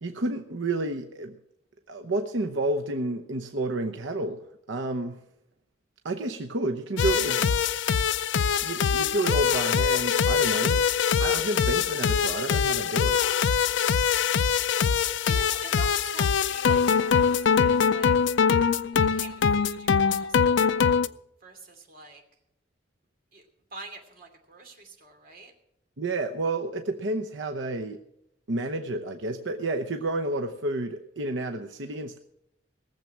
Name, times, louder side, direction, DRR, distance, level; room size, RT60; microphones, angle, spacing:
voice 1, 0.0-1.4 1.9-4.4 4.7-5.2 6.0-7.4 8.6-10.8 11.2-13.2 26.0-28.0 28.5-32.2, right 2 dB, 90° right, 4 dB, 0.9 m, -30 dB
sound 1, 7.0-21.1, left 6 dB, 75° left, 0.5 m, -23 dB
voice 2, 15.0-18.1 18.9-21.1 21.4-22.2 23.3-23.4 23.7-25.5, right 3 dB, 50° right, 3 dB, 2.8 m, -46 dB
18.5 x 7.4 x 7.3 m, 0.81 s
head